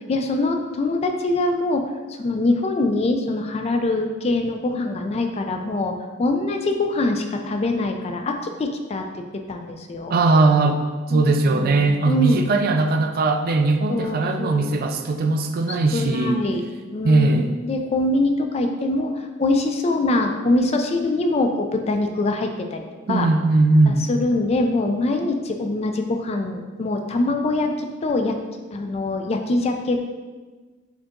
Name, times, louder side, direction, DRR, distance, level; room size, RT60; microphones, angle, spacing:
voice 1, 0.1-10.1 11.1-12.4 13.9-14.7 15.9-16.6 16.9-23.3 23.9-28.4 28.7-30.0, left 2 dB, 30° left, 4 dB, 0.3 m, -24 dB
voice 2, 10.1-10.8 11.1-16.4 17.0-17.5 23.1-24.1, right 3 dB, 50° right, 5 dB, 0.3 m, -19 dB
4.4 x 2.8 x 3.7 m, 1.3 s
head